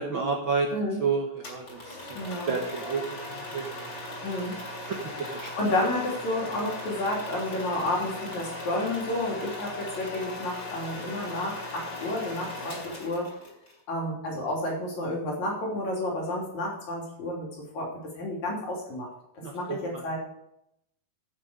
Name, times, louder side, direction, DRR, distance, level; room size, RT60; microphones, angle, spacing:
voice 1, 0.0-0.7 1.0-2.2 2.5-3.9 4.9-5.5 6.1-6.2 12.6-12.7 19.4-20.0, right 5 dB, 85° right, 0 dB, 1.0 m, -31 dB
sound 1, 1.4-13.7, left 2 dB, 35° left, 3.5 m, -38 dB
voice 2, 2.1-2.5 4.2-4.6 5.6-13.3 13.9-17.5 17.7-19.1 19.3-20.2, left 1 dB, 50° left, -2 dB, 4.3 m, -31 dB
15.0 x 6.8 x 5.0 m, 0.79 s
omnidirectional pair, 4.2 m